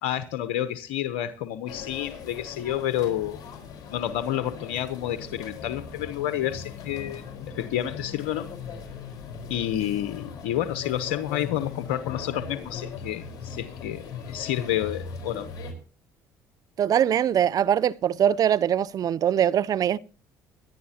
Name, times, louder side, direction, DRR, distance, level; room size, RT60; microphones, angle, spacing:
voice 1, 0.0-3.4 3.9-8.5 9.5-15.5, left 11 dB, 85° left, 0.9 m, -29 dB
sound 1, 1.7-15.7, left 6 dB, 55° left, 4.6 m, -39 dB
voice 2, 16.8-20.0, right 9 dB, 50° right, 0.6 m, -22 dB
24.0 x 10.5 x 2.9 m
supercardioid pair, 75°, 8 cm